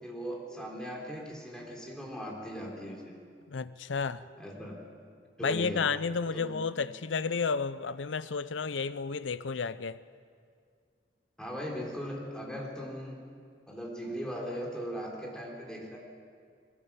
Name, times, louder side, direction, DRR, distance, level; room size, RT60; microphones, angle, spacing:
voice 1, 0.0-3.2 4.4-4.8 5.4-5.9 6.3-6.6 11.4-13.2 13.7-16.0, equal, 5° left, 3.5 m, -39 dB
voice 2, 3.5-4.2 5.4-10.0, left 5 dB, 85° left, 0.6 m, -32 dB
21.5 x 16.5 x 7.3 m
head